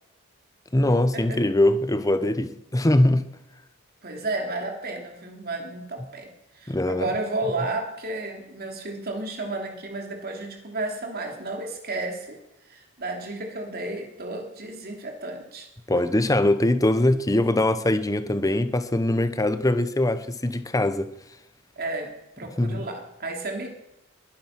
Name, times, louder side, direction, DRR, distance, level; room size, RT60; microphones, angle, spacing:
voice 1, 0.7-3.3 6.7-7.1 15.9-21.1 22.6-22.8, left 1 dB, 15° left, 0.8 m, -22 dB
voice 2, 4.0-6.3 6.5-12.4 12.6-15.7 21.8-23.7, right 2 dB, 45° right, 3.1 m, -32 dB
21.5 x 10.5 x 5.9 m
head